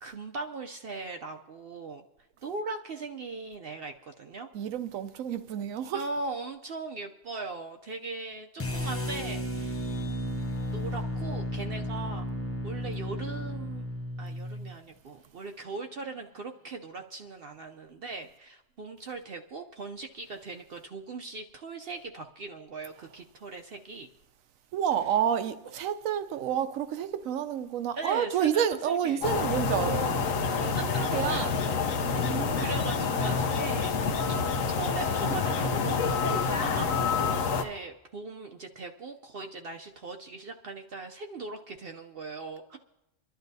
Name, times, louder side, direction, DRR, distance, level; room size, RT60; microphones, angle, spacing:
voice 1, 0.0-2.0 2.4-4.5 5.9-9.8 10.7-12.2 12.6-13.8 14.2-24.1 27.9-29.2 30.6-30.8 31.3-31.6 32.0-33.9 34.3-42.8, right 3 dB, 60° right, 0.7 m, -39 dB
voice 2, 4.5-6.0 24.7-30.3 31.0-31.6 32.2-32.7, right 9 dB, 80° right, 1.0 m, -29 dB
sound 1, 8.6-14.7, equal, 20° left, 0.3 m, -33 dB
sound 2, 29.2-37.6, left 5 dB, 80° left, 1.2 m, -27 dB
27.5 x 11.5 x 2.7 m
omnidirectional pair, 1.4 m